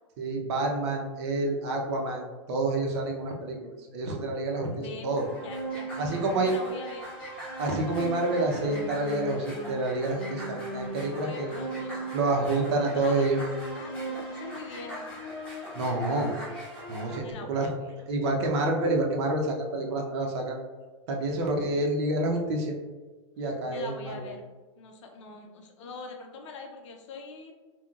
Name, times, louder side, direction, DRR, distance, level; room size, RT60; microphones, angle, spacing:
voice 1, 0.2-5.3 6.0-6.5 7.6-11.6 12.1-13.4 15.7-16.4 16.9-17.7 18.1-20.6 21.1-22.8 23.4-24.3, right 2 dB, 60° right, 1 dB, 0.7 m, -28 dB
voice 2, 4.7-7.1 11.2-11.9 12.4-13.5 13.7-15.2 17.2-17.7 23.7-24.4 24.8-27.5, left 4 dB, 70° left, 3 dB, 0.6 m, -43 dB
sound 1, 5.2-17.1, right 1 dB, 5° left, 1.4 m, -38 dB
3.6 x 2.2 x 2.3 m, 1.3 s
hypercardioid pair, 120°, 16 cm